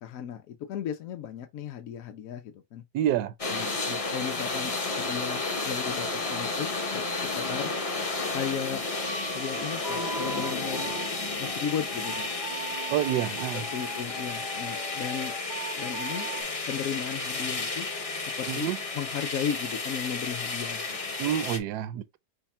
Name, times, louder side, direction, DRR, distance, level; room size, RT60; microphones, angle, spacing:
voice 1, 0.0-2.8 3.5-7.7 8.3-8.8 9.3-10.9 11.4-12.3 13.5-15.3 15.8-16.3 16.7-17.9 18.4-21.1, left 8 dB, 65° left, 0.9 m, -36 dB
voice 2, 2.9-3.3 12.9-13.6 18.5-18.8 21.2-22.2, right 11 dB, 80° right, 1.1 m, -28 dB
sound 1, 3.4-21.6, left 3 dB, 50° left, 0.4 m, -32 dB
sound 2, 9.0-16.4, right 3 dB, 45° right, 0.3 m, -40 dB
5.7 x 2.1 x 4.2 m
omnidirectional pair, 1.8 m